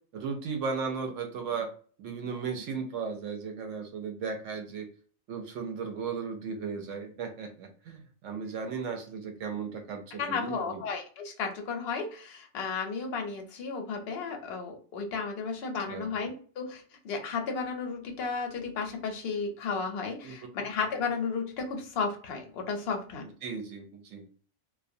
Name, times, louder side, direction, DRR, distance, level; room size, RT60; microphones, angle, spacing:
voice 1, 0.1-1.7 2.0-4.9 5.3-10.8 15.9-16.2 20.2-20.3 23.4-24.2, right 5 dB, 70° right, 5 dB, 0.8 m, -36 dB
voice 2, 10.1-23.3, left 5 dB, 60° left, 3 dB, 0.7 m, -33 dB
2.3 x 2.1 x 2.5 m, 0.42 s
omnidirectional pair, 1.5 m